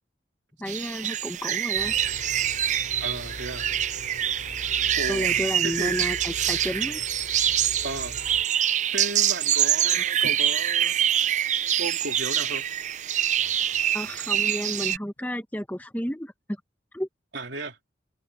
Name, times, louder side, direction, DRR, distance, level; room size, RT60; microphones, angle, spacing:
voice 1, 0.6-1.9 5.1-7.0 13.9-16.3 16.9-17.1, equal, 10° left, 1.4 m, -31 dB
sound 1, 0.7-15.0, right 10 dB, 40° right, 0.5 m, -25 dB
sound-landscapers mowing motors buzzing, 1.8-8.4, left 1 dB, 85° left, 5.6 m, -42 dB
voice 2, 3.0-3.7 5.0-6.0 7.8-8.2 8.9-11.0 11.6-12.7 17.3-17.8, right 2 dB, 75° right, 3.5 m, -35 dB
sound 2, 10.2-10.7 13.3-14.6 15.2-15.3, equal, 60° left, 5.8 m, -49 dB
head